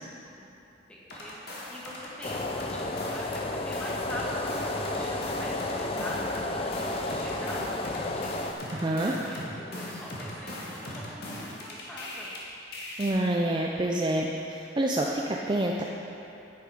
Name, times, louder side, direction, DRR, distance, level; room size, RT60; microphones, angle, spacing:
voice 1, 0.9-12.4, equal, 5° left, -5 dB, 1.6 m, -43 dB
sound 1, 1.1-3.4 3.7-12.4 12.7-13.1, left 1 dB, 50° left, 1.9 m, -39 dB
sound 2, 2.2-8.5, left 2 dB, 30° left, 0.5 m, -32 dB
voice 2, 8.7-9.1 13.0-15.8, right 1 dB, 25° right, -1 dB, 0.5 m, -27 dB
10.0 x 9.6 x 5.1 m, 2.9 s
head